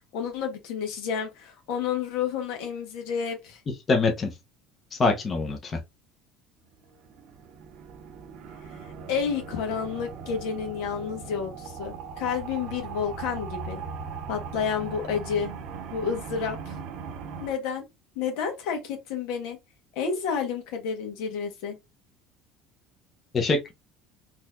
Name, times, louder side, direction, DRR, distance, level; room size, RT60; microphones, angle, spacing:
voice 1, 0.1-3.6 8.8-13.8 14.3-15.5 15.9-16.7 17.4-17.8 18.1-19.6 19.9-21.8, left 7 dB, 80° left, 1.3 m, -30 dB
voice 2, 3.9-4.3 4.9-5.8 23.3-23.7, left 3 dB, 30° left, 0.8 m, -24 dB
sound 1, 6.8-17.5, right 5 dB, 60° right, 0.7 m, -39 dB
4.0 x 3.0 x 2.6 m
cardioid pair, 120°, 0 cm